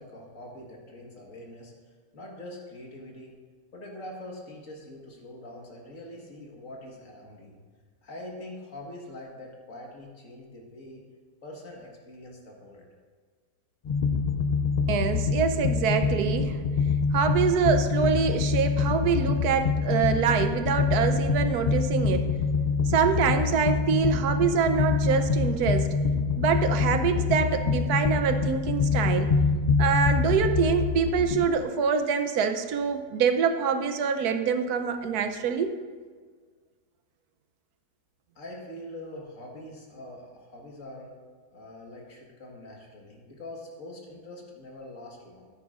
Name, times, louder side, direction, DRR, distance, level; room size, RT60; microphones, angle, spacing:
voice 1, 0.0-3.4 3.7-7.6 8.0-11.0 11.4-12.9 38.4-41.2 41.5-45.5, left 1 dB, 60° left, -1 dB, 1.9 m, -44 dB
sound 1, 13.9-31.5, left 4 dB, 85° left, 0.3 m, -25 dB
voice 2, 14.9-16.6 17.1-22.3 22.9-25.9 26.4-29.3 29.8-35.8, right 6 dB, 90° right, 8 dB, 1.2 m, -25 dB
13.0 x 9.7 x 2.5 m, 1.6 s
omnidirectional pair, 1.6 m